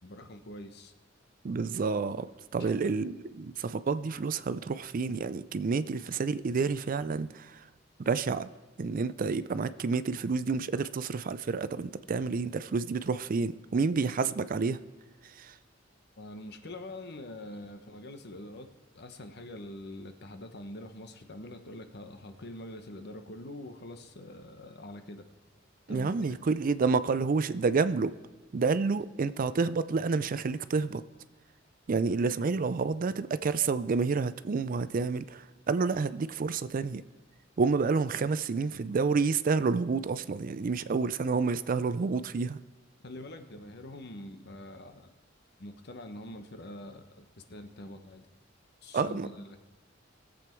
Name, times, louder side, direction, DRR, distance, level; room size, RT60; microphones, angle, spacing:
voice 1, 0.0-0.9 2.6-2.8 16.2-18.7 18.9-25.3 25.9-26.2 43.0-45.1 45.6-48.3 48.8-49.6, left 1 dB, 60° left, 8 dB, 1.0 m, -44 dB
voice 2, 1.4-2.3 2.5-7.6 8.1-8.5 8.8-14.8 15.4-15.5 25.9-28.1 28.5-31.0 31.9-37.0 37.6-42.6 48.9-49.3, right 4 dB, 45° right, 15 dB, 0.4 m, -29 dB
20.0 x 7.9 x 4.5 m, 1.2 s
head